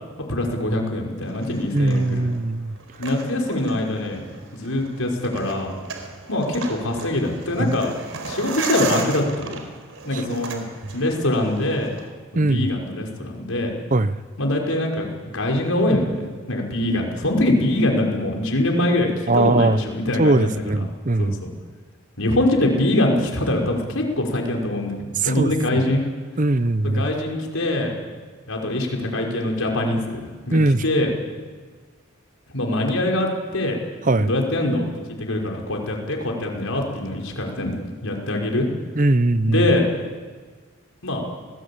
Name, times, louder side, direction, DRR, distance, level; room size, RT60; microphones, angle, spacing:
voice 1, 0.2-2.3 3.0-4.2 4.5-5.7 6.3-7.9 8.2-9.6 10.0-10.7 10.9-11.9 12.3-13.7 14.4-15.1 15.3-16.2 16.5-20.8 21.2-21.5 22.2-25.0 25.2-26.0 26.8-28.0 28.5-31.1 32.5-33.8 34.3-37.7 38.0-38.7 39.5-39.9 41.0-41.2, left 1 dB, 70° left, 1 dB, 5.6 m, -23 dB
sound 1, 1.2-12.1, right 5 dB, 70° right, 4.3 m, -36 dB
voice 2, 1.7-2.8 7.6-7.7 10.1-10.4 12.3-12.7 13.9-14.2 19.3-19.8 20.2-21.4 25.2-25.8 26.4-27.0 30.5-30.8 34.1-34.3 39.0-39.7, right 2 dB, 35° right, 14 dB, 0.8 m, -20 dB
29.5 x 20.5 x 8.8 m, 1.5 s
head